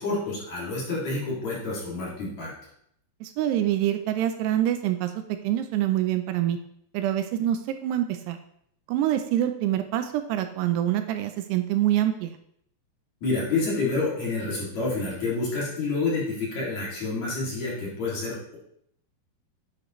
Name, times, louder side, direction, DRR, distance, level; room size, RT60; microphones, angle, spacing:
voice 1, 0.0-2.5 13.2-18.6, left 3 dB, 45° left, -6 dB, 3.4 m, -28 dB
voice 2, 3.2-5.1 5.4-6.6 6.9-8.4 8.9-12.3, right 12 dB, 80° right, 8 dB, 2.6 m, -25 dB
9.6 x 8.4 x 3.1 m, 0.70 s
omnidirectional pair, 4.9 m